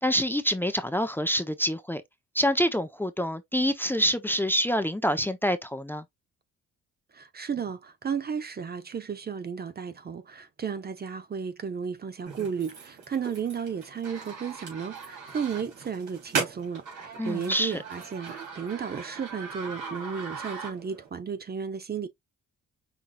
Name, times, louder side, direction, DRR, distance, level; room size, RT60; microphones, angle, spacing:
voice 1, 0.0-2.0 2.3-6.0 17.2-17.8, equal, 5° left, 0.6 m, -26 dB
voice 2, 7.1-22.1, right 6 dB, 30° right, 0.7 m, -34 dB
sound 1, 12.2-21.1, right 5 dB, 80° right, 3.1 m, -38 dB
5.8 x 3.7 x 2.3 m
cardioid pair, 90°, 30 cm